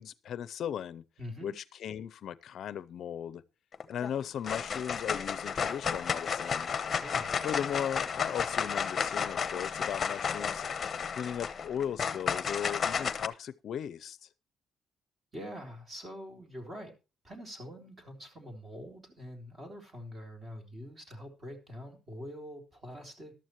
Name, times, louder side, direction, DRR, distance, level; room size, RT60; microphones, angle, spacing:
voice 1, 0.0-1.0 1.4-3.4 3.9-6.7 7.4-10.7 11.1-14.3, left 9 dB, 60° left, 0.5 m, -37 dB
voice 2, 1.2-1.5 7.0-7.3 15.3-16.9 17.2-23.3, equal, 25° right, 3.5 m, -44 dB
sound 1, 3.7-4.1 4.4-13.3, left 6 dB, 35° left, 0.9 m, -32 dB
14.0 x 12.0 x 3.0 m
cardioid pair, 150°, 0 cm